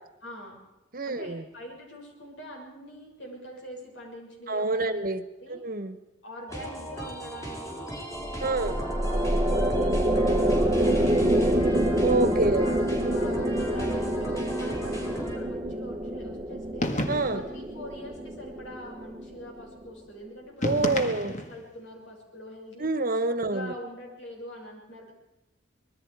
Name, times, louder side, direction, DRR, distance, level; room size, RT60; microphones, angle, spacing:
voice 1, 0.2-0.6 1.0-5.0 5.4-5.6 6.2-8.0 8.4-11.8 12.6-16.9 17.3-22.9 23.4-25.1, equal, 85° left, 0 dB, 6.5 m, -44 dB
voice 2, 0.9-1.4 4.5-5.2 5.5-6.0 8.4-8.7 12.0-12.7 17.1-17.4 20.6-21.3 22.8-23.7, right 3 dB, 50° right, 11 dB, 1.3 m, -27 dB
sound 1, 6.5-15.4, equal, 15° left, 4.6 m, -37 dB
sound 2, 8.2-19.6, right 1 dB, 20° right, 1.0 m, -27 dB
sound 3, 16.8-17.6 20.6-21.6, left 1 dB, 40° left, 1.8 m, -30 dB
25.0 x 21.0 x 4.9 m, 0.97 s
head